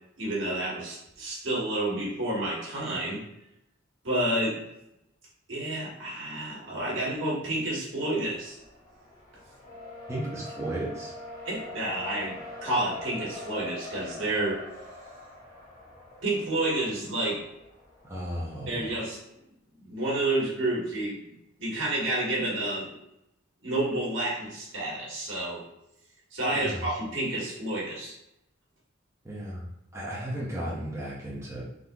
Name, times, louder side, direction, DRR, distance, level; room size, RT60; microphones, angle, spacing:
voice 1, 0.2-3.2 4.0-4.6 5.5-8.6 11.4-14.6 16.2-17.4 18.7-19.2 19.8-21.2 21.6-22.9 23.6-25.6 26.3-28.1, right 1 dB, 65° right, -5 dB, 1.3 m, -30 dB
Race car auto racing, 8.0-19.1, left 2 dB, 20° left, 0.8 m, -45 dB
Brass instrument, 9.6-13.7, equal, 40° left, 1.0 m, -44 dB
voice 2, 10.1-11.1 18.0-18.9 26.5-26.9 29.2-29.7 29.9-31.7, right 1 dB, 15° right, -7 dB, 0.5 m, -34 dB
3.7 x 2.7 x 2.3 m, 0.85 s
head